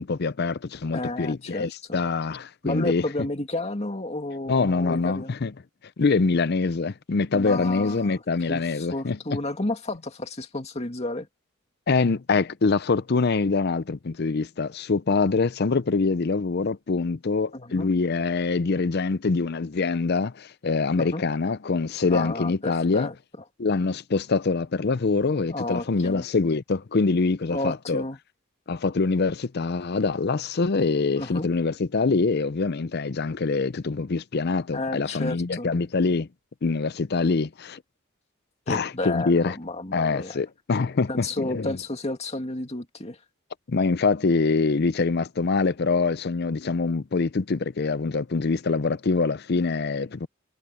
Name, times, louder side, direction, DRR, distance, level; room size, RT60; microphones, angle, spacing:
voice 1, 0.0-3.0 4.5-5.5 6.0-9.2 11.9-23.1 23.6-28.0 28.7-36.3 36.6-37.8 38.7-39.5 39.9-41.7 43.7-50.3, left 4 dB, 50° left, 0.5 m, -24 dB
voice 2, 0.9-2.0 2.6-5.4 7.3-8.2 8.5-11.3 17.5-17.9 21.0-21.2 22.1-23.1 25.5-26.3 27.5-28.2 31.2-31.5 34.7-35.7 38.7-40.4 41.1-43.2, left 2 dB, 30° left, 2.3 m, -31 dB
head